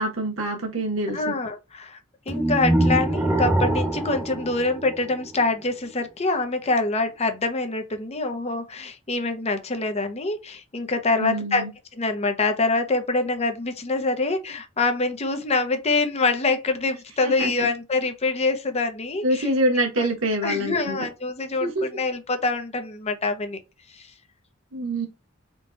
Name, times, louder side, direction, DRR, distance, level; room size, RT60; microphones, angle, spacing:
voice 1, 0.0-1.3 11.2-11.7 17.2-17.7 19.2-21.1 21.6-21.8 24.7-25.1, right 1 dB, 85° right, 1.3 m, -25 dB
voice 2, 1.1-2.0 2.3-11.6 12.0-19.5 20.0-20.1 20.4-23.6 23.9-24.1, left 3 dB, 30° left, 0.7 m, -25 dB
sound 1, 2.3-5.4, right 1 dB, 10° right, 0.8 m, -24 dB
3.8 x 2.3 x 3.8 m
head